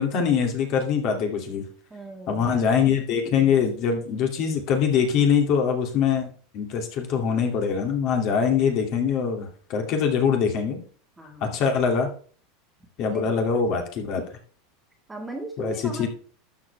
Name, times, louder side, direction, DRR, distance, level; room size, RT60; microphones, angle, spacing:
voice 1, 0.0-1.6 2.3-6.3 6.5-10.8 11.4-12.1 13.0-14.2 15.6-16.1, left 6 dB, 45° left, 3 dB, 2.4 m, -23 dB
voice 2, 1.9-2.6 11.2-11.6 13.1-13.4 15.1-16.1, right 2 dB, 5° right, 2 dB, 1.8 m, -38 dB
12.0 x 7.1 x 3.3 m, 0.42 s
supercardioid pair, 160°, 0 cm